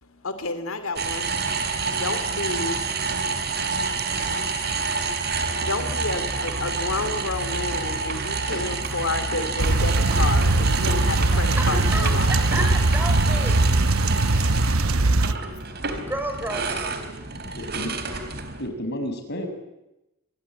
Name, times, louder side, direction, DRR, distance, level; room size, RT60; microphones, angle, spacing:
voice 1, 0.0-12.5 15.2-15.6, left 3 dB, 80° left, 2.7 m, -32 dB
sound 1, 1.0-18.7, right 4 dB, 50° right, 4.1 m, -28 dB
sound 2, 9.6-15.3, right 2 dB, 90° right, 1.0 m, -21 dB
voice 2, 11.3-12.1 12.5-13.6 16.0-17.0, right 1 dB, 10° right, 5.8 m, -31 dB
voice 3, 17.5-17.9 18.6-19.5, equal, 50° left, 6.6 m, -31 dB
28.0 x 23.0 x 8.8 m
head